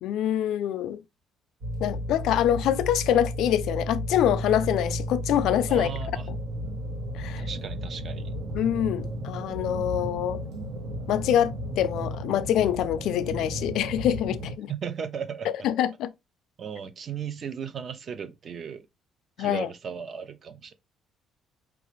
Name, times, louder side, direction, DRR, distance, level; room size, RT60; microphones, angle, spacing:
voice 1, 0.0-1.0 1.8-5.9 7.1-7.4 8.5-10.4 11.1-14.7 15.6-16.1 19.4-19.7, left 11 dB, 75° left, 0.4 m, -25 dB
sound 1, 1.6-14.5, equal, 75° right, 1.1 m, -33 dB
voice 2, 5.7-6.3 7.2-8.3 14.7-15.7 16.6-18.9 19.4-20.7, right 7 dB, 40° right, 0.5 m, -36 dB
4.7 x 2.4 x 3.0 m
cardioid pair, 145°, 0 cm